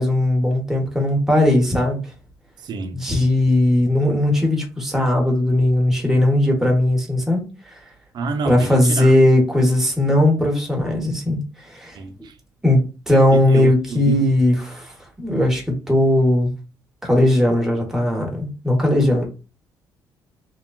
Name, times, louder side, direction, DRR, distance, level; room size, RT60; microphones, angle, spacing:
voice 1, 0.0-2.0 2.9-7.4 8.4-11.4 11.7-12.0 12.6-14.9 15.2-16.5 17.0-19.3, left 1 dB, 5° right, 1.0 m, -18 dB
voice 2, 2.6-3.0 8.1-9.1 11.9-12.3 13.3-14.4, right 4 dB, 60° right, 0.6 m, -28 dB
3.1 x 2.2 x 2.3 m
cardioid pair, 110°, 8 cm